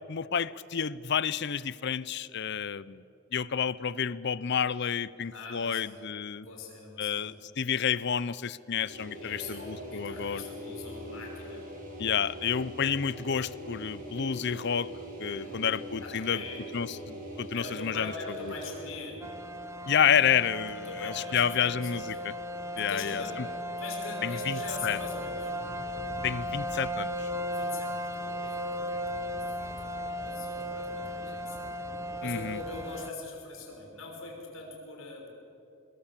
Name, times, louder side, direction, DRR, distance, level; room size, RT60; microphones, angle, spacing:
voice 1, 0.1-3.0 3.3-6.5 7.0-10.4 12.0-14.9 15.2-16.4 16.7-18.1 19.9-22.3 22.8-23.5 24.2-25.0 26.2-27.3 32.2-32.6, left 7 dB, 60° left, 18 dB, 0.6 m, -30 dB
voice 2, 5.3-6.0 6.4-7.3 9.1-11.6 15.3-16.6 17.5-19.2 20.7-21.8 22.8-23.5 23.8-25.5 27.5-31.7 32.2-35.3, left 3 dB, 80° left, 1 dB, 6.0 m, -43 dB
sound 1, 8.7-19.1, equal, 45° right, 7.1 m, -42 dB
sound 2, 19.2-33.1, equal, 15° right, 0.9 m, -36 dB
27.0 x 22.0 x 7.5 m, 2.8 s
head